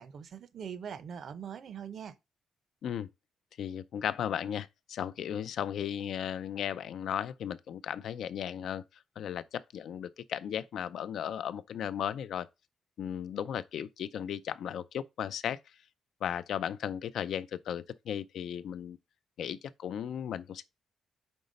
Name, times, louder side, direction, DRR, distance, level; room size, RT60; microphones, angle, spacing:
voice 1, 0.0-2.2, right 7 dB, 45° right, 0.6 m, -42 dB
voice 2, 3.6-8.8 9.2-12.5 13.0-15.6 16.2-19.0 19.4-20.6, left 9 dB, 60° left, 0.4 m, -35 dB
5.3 x 3.9 x 5.1 m
cardioid pair, 180°, 0 cm